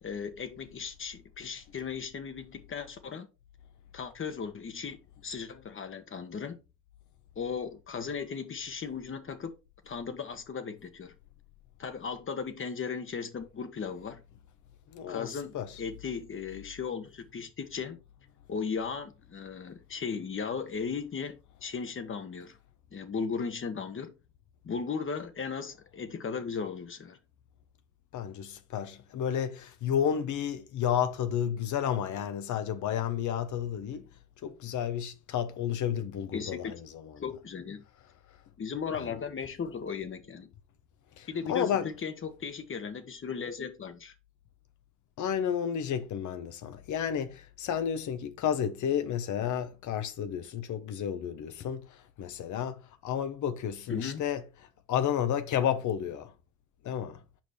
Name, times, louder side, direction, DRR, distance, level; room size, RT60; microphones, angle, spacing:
voice 1, 0.0-3.3 3.9-5.0 5.2-6.6 7.4-9.5 9.9-11.1 11.8-14.2 15.1-18.0 18.5-22.6 22.9-24.1 24.6-27.2 36.3-36.7 37.2-37.8 38.6-40.5 41.3-44.1 53.9-54.2, left 6 dB, 45° left, 1.3 m, -36 dB
voice 2, 14.9-15.3 15.5-15.7 28.1-34.0 34.4-37.1 38.9-39.1 41.2-41.9 45.2-54.4 54.9-56.3 56.8-57.2, left 9 dB, 75° left, 1.0 m, -31 dB
6.0 x 5.0 x 4.3 m
cardioid pair, 90°, 30 cm